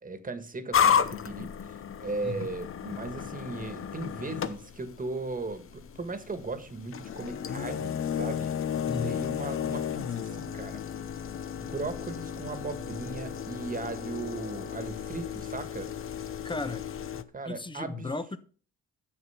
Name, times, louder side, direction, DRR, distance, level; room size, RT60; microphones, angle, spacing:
voice 1, 0.0-1.5 2.0-8.5 9.0-10.8 11.6-15.9 17.3-18.1, right 3 dB, 25° right, 1.7 m, -37 dB
sound 1, 0.7-17.2, left 8 dB, 45° left, 0.8 m, -33 dB
voice 2, 8.9-9.2 16.4-16.8 17.1-18.4, left 3 dB, 15° left, 1.0 m, -35 dB
10.0 x 6.9 x 5.8 m
cardioid pair, 90°, 30 cm